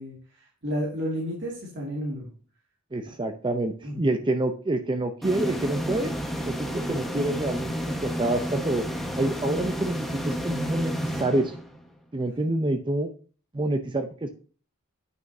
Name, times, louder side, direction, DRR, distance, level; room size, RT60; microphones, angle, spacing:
voice 1, 0.0-2.3 3.8-4.0, equal, 60° right, -3 dB, 2.2 m, -32 dB
voice 2, 2.9-6.1 6.4-11.6 12.1-13.1 13.5-14.3, right 2 dB, 25° right, 7 dB, 0.6 m, -27 dB
sound 1, 5.2-12.0, equal, ahead, 1.2 m, -31 dB
9.2 x 6.2 x 2.7 m, 0.40 s
head